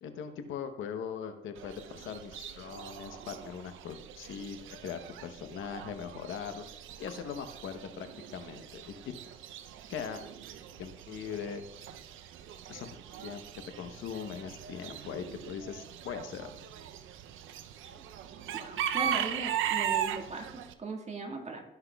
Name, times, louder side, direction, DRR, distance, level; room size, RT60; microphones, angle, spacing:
voice 1, 0.0-6.6 7.0-8.9 9.9-10.2 10.8-11.6 12.7-12.9 13.2-13.4 13.8-16.5, left 7 dB, 80° left, 8 dB, 0.9 m, -40 dB
Chicken rooster / Bird, 1.6-20.7, right 10 dB, 80° right, 0.6 m, -39 dB
voice 2, 18.5-21.6, right 3 dB, 35° right, 2 dB, 1.8 m, -38 dB
17.0 x 5.9 x 2.3 m, 0.86 s
cardioid pair, 90°, 20 cm